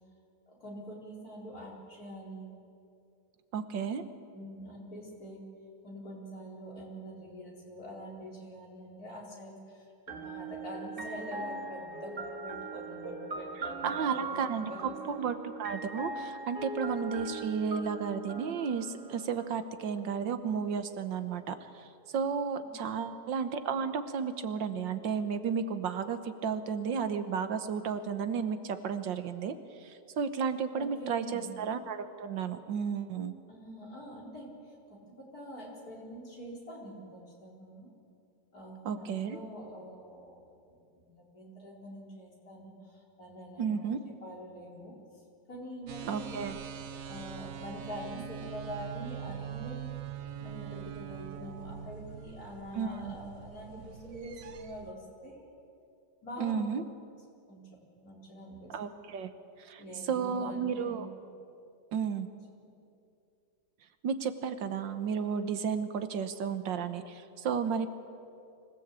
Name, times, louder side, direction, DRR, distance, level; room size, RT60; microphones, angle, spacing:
voice 1, 0.5-2.6 4.3-5.4 5.8-15.2 22.6-23.1 30.7-31.6 33.5-37.9 38.5-43.9 44.2-44.9 45.5-46.4 47.0-49.9 50.4-55.5 56.2-56.6 57.5-57.7 58.0-58.8 59.8-61.1 62.7-62.8, equal, 50° left, -3 dB, 4.7 m, -45 dB
voice 2, 3.5-4.0 13.8-14.7 15.1-21.9 22.1-29.5 29.8-33.3 38.9-39.4 43.6-44.0 46.1-46.6 52.7-53.1 56.4-56.8 58.7-59.3 59.6-59.8 60.1-61.1 61.9-62.3 64.0-67.9, right 6 dB, 80° right, 10 dB, 1.8 m, -33 dB
sound 1, 10.1-19.9, right 3 dB, 35° right, 1.3 m, -40 dB
sound 2, 45.9-54.9, right 9 dB, 55° right, 1.1 m, -43 dB
25.0 x 17.0 x 8.3 m, 2.5 s
omnidirectional pair, 2.0 m